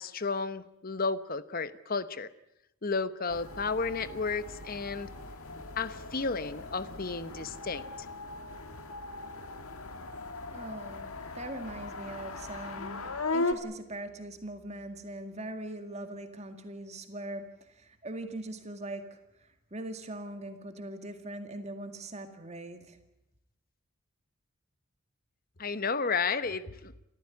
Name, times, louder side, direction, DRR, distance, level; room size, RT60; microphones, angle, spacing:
voice 1, 0.0-2.3 2.8-5.1 5.8-7.9 25.6-26.9, left 4 dB, 40° left, 14 dB, 1.0 m, -32 dB
sound 1, 3.3-13.5, left 2 dB, 85° left, 2.0 m, -38 dB
voice 2, 10.5-23.0, right 1 dB, 30° right, 7 dB, 2.1 m, -41 dB
28.5 x 14.5 x 9.7 m, 0.86 s
head